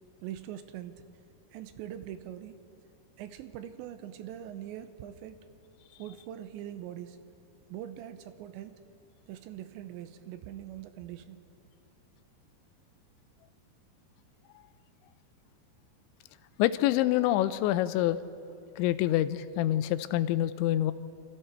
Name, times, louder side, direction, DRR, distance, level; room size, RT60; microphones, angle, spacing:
voice 1, 0.2-1.0 1.5-2.6 3.2-5.4 6.0-7.2 7.7-8.8 9.3-11.4, right 11 dB, 85° right, 10 dB, 3.0 m, -42 dB
voice 2, 16.6-18.2 18.8-20.9, left 13 dB, 85° left, 13 dB, 2.9 m, -26 dB
27.5 x 25.5 x 4.5 m, 2.6 s
omnidirectional pair, 5.3 m